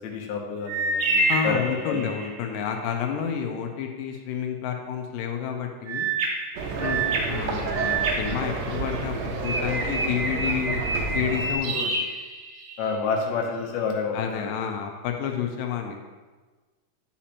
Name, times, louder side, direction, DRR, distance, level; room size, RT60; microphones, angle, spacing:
voice 1, 0.0-2.1 6.8-7.1 11.7-11.9 12.8-14.5, left 5 dB, 70° left, 0 dB, 2.0 m, -29 dB
sound 1, 0.7-2.4 5.9-9.0 9.4-12.9, right 2 dB, 65° right, 1.4 m, -28 dB
voice 2, 1.3-6.1 7.3-12.1 14.1-16.1, left 8 dB, 90° left, 3 dB, 2.2 m, -30 dB
sound 2, 6.6-11.6, right 3 dB, 80° right, 1.5 m, -30 dB
8.6 x 5.1 x 2.9 m, 1.3 s
omnidirectional pair, 3.8 m